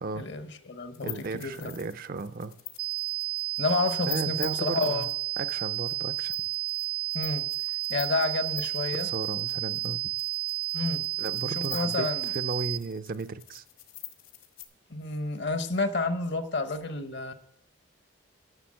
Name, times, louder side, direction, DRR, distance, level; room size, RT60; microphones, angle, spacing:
voice 1, 0.2-1.7 3.6-5.1 7.1-7.5 7.9-9.1 10.7-11.0 11.4-12.3 14.9-17.3, left 3 dB, 55° left, 0.9 m, -30 dB
sound 1, 0.9-14.6, left 14 dB, 75° left, 1.6 m, -45 dB
voice 2, 1.0-2.5 4.1-5.1 5.4-6.3 8.9-10.1 11.2-13.6, right 3 dB, 40° right, 0.5 m, -35 dB
sound 2, 2.8-12.8, right 14 dB, 85° right, 1.1 m, -31 dB
11.5 x 6.8 x 7.4 m
head